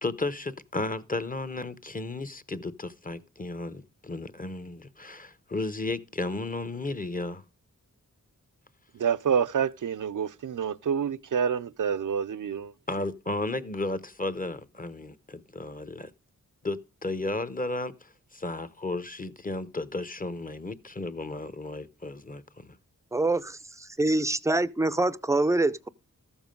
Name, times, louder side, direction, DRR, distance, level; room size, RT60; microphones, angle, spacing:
voice 1, 0.0-7.4 12.9-16.1 16.6-22.8, left 2 dB, 25° left, 0.8 m, -34 dB
voice 2, 8.9-12.7, right 7 dB, 75° right, 0.6 m, -28 dB
voice 3, 23.1-25.9, right 2 dB, 10° right, 0.5 m, -25 dB
13.5 x 7.2 x 5.2 m
wide cardioid pair, 95°, 32 cm